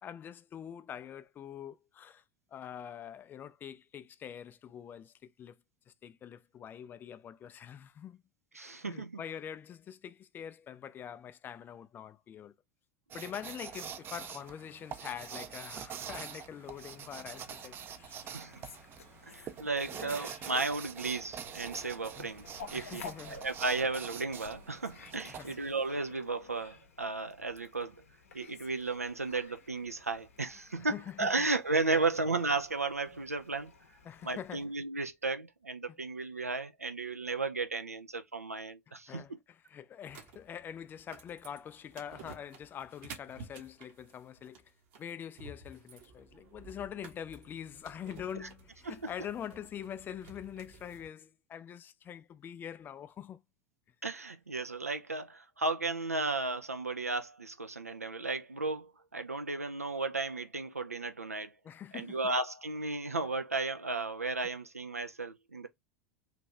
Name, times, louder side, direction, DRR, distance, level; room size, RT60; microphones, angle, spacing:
voice 1, 0.0-2.2 2.5-5.6 5.9-8.2 8.5-12.5 13.1-18.4 19.9-20.1 22.2-22.3 22.7-23.5 25.3-25.6 30.8-31.3 31.9-32.0 34.0-34.7 39.1-44.7 45.0-53.4 61.6-62.2, left 9 dB, 25° left, 0.4 m, -44 dB
voice 2, 8.5-9.2 18.3-18.6 19.3-27.9 28.3-33.7 34.2-39.4 48.4-48.5 48.9-49.0 54.0-61.5 61.9-65.7, right 3 dB, 85° right, 0.5 m, -34 dB
sound 1, 13.1-25.9, right 8 dB, 30° right, 0.5 m, -45 dB
Fowl, 16.6-34.6, left 5 dB, 70° left, 0.7 m, -54 dB
sound 2, 40.1-51.1, right 4 dB, 50° right, 1.1 m, -53 dB
3.3 x 2.5 x 3.2 m
figure-of-eight pair, 85°, 8 cm